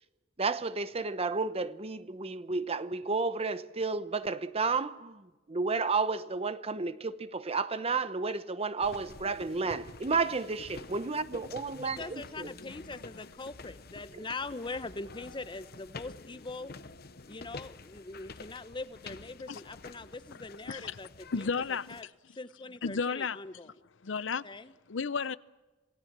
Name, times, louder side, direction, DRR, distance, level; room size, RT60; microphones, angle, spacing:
voice 1, 0.4-12.5 14.1-14.2, right 4 dB, 35° right, 0.9 m, -32 dB
sound 1, 8.8-22.0, left 4 dB, 55° left, 1.0 m, -48 dB
voice 2, 11.8-16.7 17.3-21.5 21.9-22.1 22.3-23.7 24.4-24.7, left 3 dB, 25° left, 1.0 m, -42 dB
voice 3, 20.7-21.0 21.3-22.0 22.8-23.4 24.0-24.5 24.9-25.4, left 5 dB, 75° left, 0.7 m, -32 dB
27.0 x 18.0 x 7.5 m
head